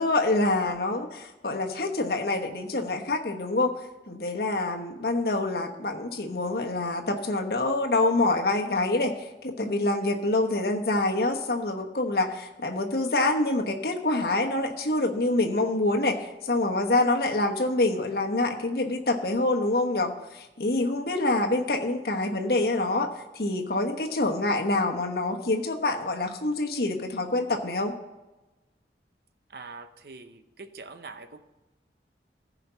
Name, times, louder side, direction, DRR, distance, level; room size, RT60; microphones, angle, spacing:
voice 1, 0.0-3.7 4.1-9.1 9.4-27.9, left 2 dB, 60° left, 3 dB, 1.1 m, -26 dB
voice 2, 29.5-31.4, right 4 dB, 60° right, 9 dB, 0.7 m, -44 dB
14.5 x 5.1 x 5.7 m, 1.1 s
head